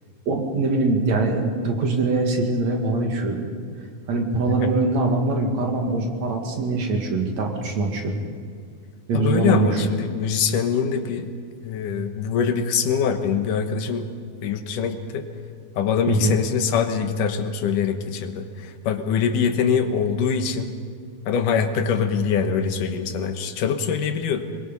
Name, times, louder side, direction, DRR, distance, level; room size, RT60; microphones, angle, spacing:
voice 1, 0.3-3.5 4.1-8.2 9.1-9.8 16.1-16.4, right 3 dB, 60° right, 2 dB, 3.3 m, -23 dB
voice 2, 9.1-11.3 11.6-14.1 14.4-15.3 15.8-20.7 21.3-24.5, left 6 dB, 90° left, 7 dB, 2.8 m, -23 dB
25.0 x 21.0 x 5.5 m, 2.1 s
omnidirectional pair, 3.6 m